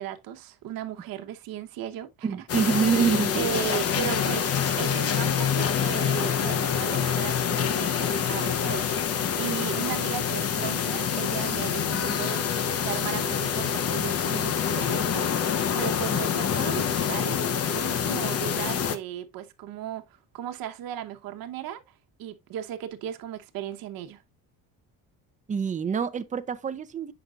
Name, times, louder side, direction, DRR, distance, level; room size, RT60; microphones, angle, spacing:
voice 1, 0.0-2.3 2.6-2.8 3.4-17.4 17.7-24.2, right 11 dB, 75° right, 1.0 m, -36 dB
voice 2, 2.2-3.6 16.1-16.2 25.5-27.1, right 6 dB, 20° right, 0.6 m, -26 dB
sound 1, 2.5-19.0, left 8 dB, 45° left, 0.8 m, -26 dB
7.9 x 6.0 x 2.4 m
cardioid pair, 145°, 35 cm